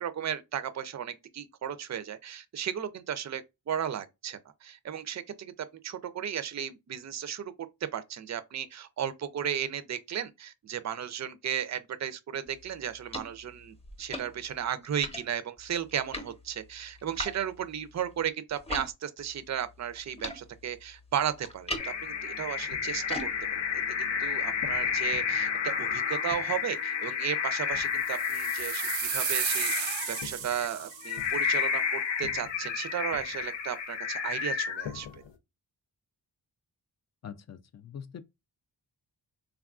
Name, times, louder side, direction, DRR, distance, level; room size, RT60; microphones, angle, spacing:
voice 1, 0.0-7.5 7.8-23.3 23.7-35.2, right 9 dB, 40° right, 0.5 m, -35 dB
sound 1, 12.5-18.9 19.2-25.1, left 1 dB, 15° left, 0.8 m, -43 dB
sound 2, 21.8-35.3, left 6 dB, 85° left, 0.7 m, -31 dB
sound 3, 28.1-31.3, right 8 dB, 90° right, 0.7 m, -33 dB
voice 2, 37.2-38.2, left 8 dB, 40° left, 0.4 m, -43 dB
3.4 x 2.3 x 2.4 m
cardioid pair, 70°, 43 cm